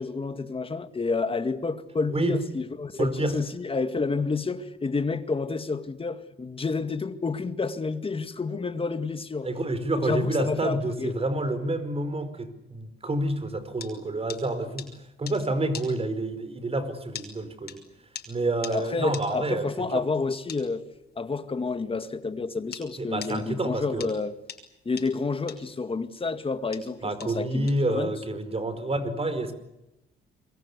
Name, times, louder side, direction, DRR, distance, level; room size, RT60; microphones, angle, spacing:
voice 1, 0.0-9.5 10.0-11.2 18.7-20.8 21.2-24.4 24.9-28.1, left 4 dB, 25° left, 2.2 m, -29 dB
voice 2, 2.1-2.4 3.0-3.4 9.4-17.8 18.3-20.0 23.0-24.1 27.0-29.5, right 2 dB, 30° right, 4.8 m, -28 dB
sound 1, 13.2-22.9 23.2-28.4, left 7 dB, 50° left, 5.9 m, -42 dB
26.5 x 23.5 x 8.4 m
cardioid pair, 90°, 20 cm